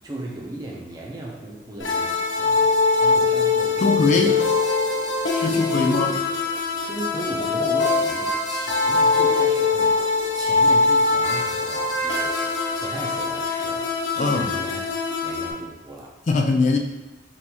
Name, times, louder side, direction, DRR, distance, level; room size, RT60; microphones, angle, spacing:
voice 1, 0.0-4.7 5.8-6.1 6.9-12.3 12.8-14.9 15.2-16.1, right 1 dB, 20° right, -3 dB, 0.7 m, -36 dB
sound 1, 1.8-15.5, left 4 dB, 85° left, 0.6 m, -22 dB
voice 2, 3.8-4.4 5.3-6.1 14.2-14.4 16.3-16.8, left 3 dB, 40° left, 3 dB, 0.3 m, -21 dB
5.4 x 2.7 x 3.0 m, 1.1 s
head